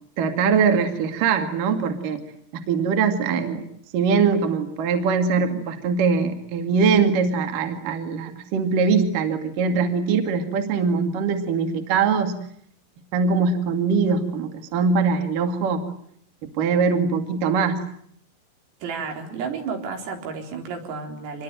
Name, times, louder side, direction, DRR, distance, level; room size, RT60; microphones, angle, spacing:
voice 1, 0.2-2.2 2.5-3.7 3.9-12.3 13.1-15.8 16.6-17.8, right 5 dB, 50° right, 6 dB, 3.2 m, -22 dB
voice 2, 18.8-21.4, right 5 dB, 80° right, 3 dB, 6.9 m, -32 dB
26.5 x 22.0 x 9.2 m, 0.67 s
omnidirectional pair, 5.9 m